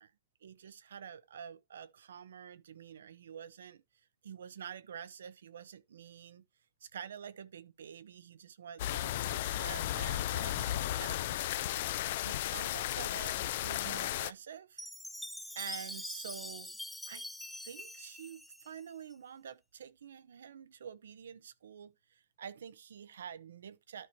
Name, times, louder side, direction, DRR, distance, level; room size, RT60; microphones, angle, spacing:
voice 1, 0.4-3.8 4.2-6.4 6.8-11.5 12.2-14.9 15.6-16.8 17.1-17.3 17.6-24.1, right 8 dB, 90° right, 0.8 m, -48 dB
sound 1, 8.8-14.3, left 14 dB, 55° left, 0.4 m, -34 dB
Chime, 14.8-19.1, left 1 dB, ahead, 0.6 m, -44 dB
12.5 x 4.5 x 3.0 m
hypercardioid pair, 145°, 0 cm